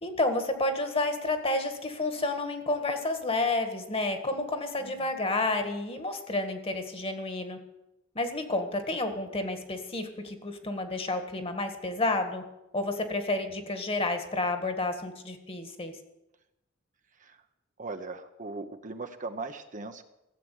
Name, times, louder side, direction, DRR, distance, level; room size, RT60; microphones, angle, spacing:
voice 1, 0.0-7.6 8.1-12.4 12.7-15.9, left 2 dB, 30° left, 7 dB, 1.7 m, -30 dB
voice 2, 17.8-20.0, right 3 dB, 40° right, 7 dB, 0.9 m, -39 dB
15.0 x 7.7 x 9.2 m, 0.91 s
head